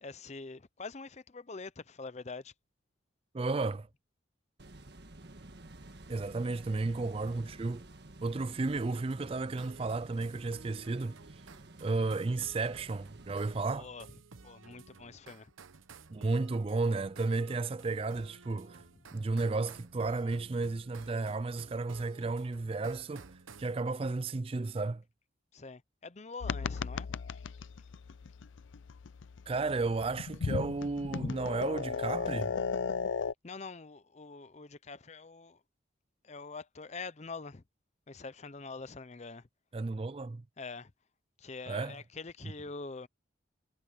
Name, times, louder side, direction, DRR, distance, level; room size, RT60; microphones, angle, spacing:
voice 1, 0.0-2.5 6.9-7.3 13.7-14.1 14.4-15.5 25.5-27.2 33.4-35.6 36.2-37.6 38.1-39.5 40.6-40.9 41.4-43.1, left 4 dB, 35° left, 0.6 m, -45 dB
voice 2, 3.3-3.9 6.1-7.8 8.2-11.2 11.8-13.9 16.1-18.8 19.1-23.3 23.6-25.0 29.5-32.5 39.7-40.4 41.7-41.9, right 3 dB, 30° right, 0.4 m, -33 dB
sound 1, 4.6-13.7, right 2 dB, 55° right, 1.7 m, -52 dB
sound 2, 8.6-23.8, right 4 dB, 90° right, 1.0 m, -54 dB
sound 3, 26.4-33.3, left 5 dB, 75° left, 0.5 m, -36 dB
head